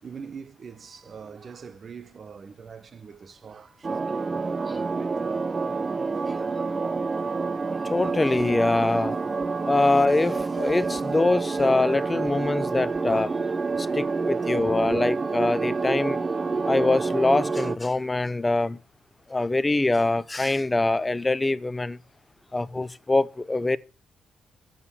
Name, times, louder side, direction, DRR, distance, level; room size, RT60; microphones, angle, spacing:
voice 1, 0.0-5.3 13.8-14.1 22.5-22.7, right 6 dB, 45° right, 1.0 m, -44 dB
sound 1, 3.8-17.8, right 4 dB, 30° right, 0.5 m, -28 dB
voice 2, 7.8-9.2 9.7-13.3 13.8-16.2 16.7-18.8 19.3-22.0 22.5-23.8, left 2 dB, 20° left, 0.6 m, -24 dB
9.9 x 7.0 x 6.9 m
cardioid pair, 90°, 0 cm